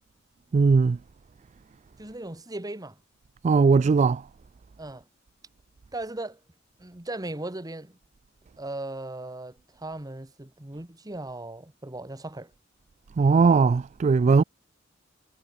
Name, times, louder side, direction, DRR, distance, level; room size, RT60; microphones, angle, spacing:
voice 1, 0.5-1.0 3.4-4.2 13.2-14.4, right 4 dB, 35° right, 0.3 m, -19 dB
voice 2, 2.0-3.0 4.8-5.0 5.9-6.4 6.8-8.0 8.6-12.5, right 2 dB, 20° right, 1.4 m, -37 dB
head